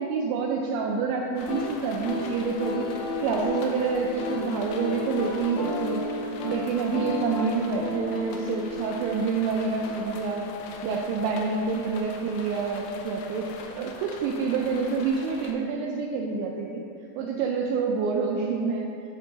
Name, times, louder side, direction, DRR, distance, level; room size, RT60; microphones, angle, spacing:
voice 1, 0.0-6.1 6.4-10.5 10.8-16.8 17.2-18.9, right 5 dB, 85° right, 0 dB, 2.7 m, -27 dB
sound 1, 1.4-15.5, left 4 dB, 85° left, 3.1 m, -43 dB
sound 2, 1.5-10.1, left 3 dB, 70° left, 2.1 m, -33 dB
10.5 x 4.4 x 3.9 m, 2.6 s
omnidirectional pair, 5.5 m